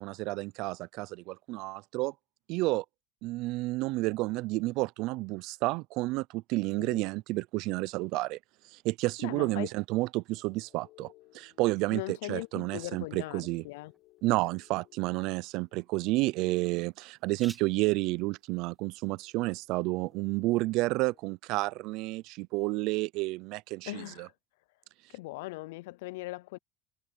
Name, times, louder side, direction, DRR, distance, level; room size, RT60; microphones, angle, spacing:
voice 1, 0.0-2.1 2.5-2.8 3.2-8.4 8.7-13.6 14.2-24.3, right 21 dB, 55° right, 0.4 m, -31 dB
voice 2, 9.2-9.7 11.9-13.9 23.9-24.3 25.1-26.6, left 21 dB, 85° left, 0.4 m, -39 dB
sound 1, 10.3-17.6 17.9-21.3, left 19 dB, 55° left, 4.1 m, -63 dB
sound 2, 13.3-20.9, right 3 dB, 10° right, 2.2 m, -59 dB
cardioid pair, 155°, 0 cm